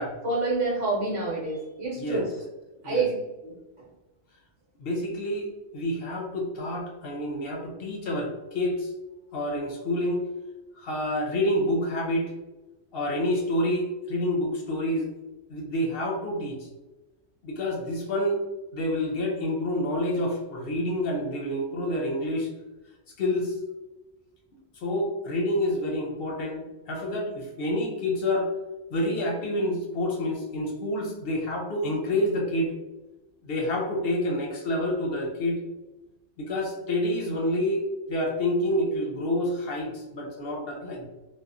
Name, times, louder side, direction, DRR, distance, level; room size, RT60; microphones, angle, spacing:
voice 1, 0.2-2.3 2.8-3.1 3.4-3.5, right 3 dB, 90° right, -6 dB, 1.1 m, -27 dB
voice 2, 4.8-8.9 9.3-10.3 10.8-12.3 12.9-15.1 15.5-16.7 17.4-18.4 18.7-22.5 23.2-23.6 24.8-28.5 28.9-32.7 33.4-35.6 36.4-37.8 38.1-41.1, left 1 dB, 60° left, 0 dB, 0.7 m, -28 dB
2.9 x 2.1 x 2.4 m, 1.1 s
omnidirectional pair, 1.2 m